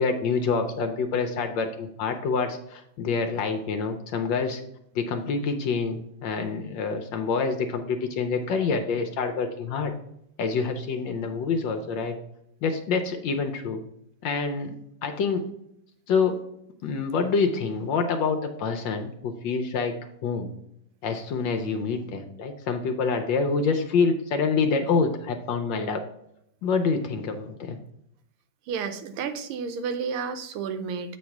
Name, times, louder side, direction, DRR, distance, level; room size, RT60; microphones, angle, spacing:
voice 1, 0.0-4.6 4.9-9.9 10.4-12.2 12.6-13.8 14.2-14.8 15.0-15.5 16.1-16.4 16.8-19.9 20.2-20.5 21.0-26.0 26.6-27.8, left 4 dB, 70° left, 6 dB, 1.2 m, -26 dB
voice 2, 28.7-31.2, right 6 dB, 85° right, 9 dB, 1.6 m, -31 dB
7.9 x 3.2 x 5.8 m, 0.76 s
omnidirectional pair, 2.4 m